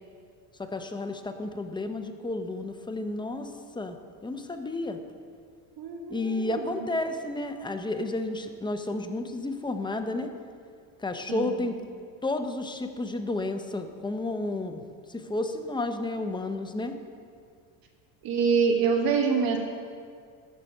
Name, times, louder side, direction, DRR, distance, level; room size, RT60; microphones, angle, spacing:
voice 1, 0.6-4.0 4.2-5.0 6.1-10.3 11.0-11.8 12.2-14.8 15.1-17.0, left 2 dB, 10° left, 6 dB, 0.8 m, -31 dB
voice 2, 5.8-6.9 11.3-11.6 18.2-19.6, right 5 dB, 55° right, 3 dB, 1.6 m, -26 dB
14.0 x 5.9 x 5.5 m, 2.2 s
supercardioid pair, 105°, 43 cm